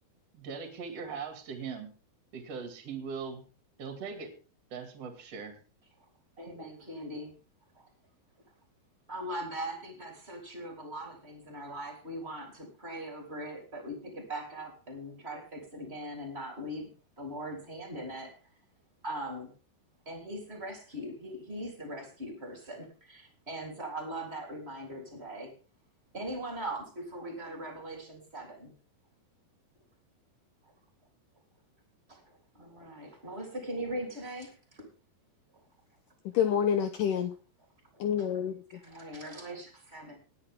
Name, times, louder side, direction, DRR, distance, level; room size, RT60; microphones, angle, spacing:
voice 1, 0.3-1.9 2.3-3.4 3.8-4.3 4.7-5.6, right 5 dB, 45° right, 6 dB, 3.0 m, -40 dB
voice 2, 6.4-7.3 7.7-7.9 9.1-16.9 17.2-18.3 19.0-19.5 20.0-25.5 26.1-28.7 32.1-32.2 32.5-34.9 37.9-38.0 38.7-40.2, right 1 dB, 15° right, 1 dB, 3.1 m, -40 dB
voice 3, 36.3-37.3 38.0-38.8, left 8 dB, 80° left, 8 dB, 1.9 m, -28 dB
20.0 x 8.9 x 3.6 m, 0.36 s
omnidirectional pair, 4.8 m